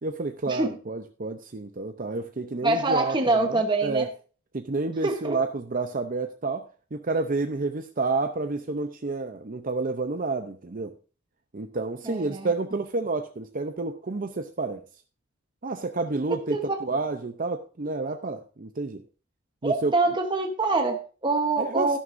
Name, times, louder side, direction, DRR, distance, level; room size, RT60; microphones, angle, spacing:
voice 1, 0.0-4.1 4.5-10.9 11.5-14.8 15.6-19.0 19.6-19.9 21.6-22.0, right 3 dB, 40° right, 7 dB, 0.6 m, -30 dB
voice 2, 2.6-4.1 5.0-5.4 12.0-12.5 16.5-16.8 19.6-22.0, right 3 dB, 20° right, 4 dB, 1.0 m, -25 dB
12.5 x 11.0 x 2.6 m, 0.36 s
head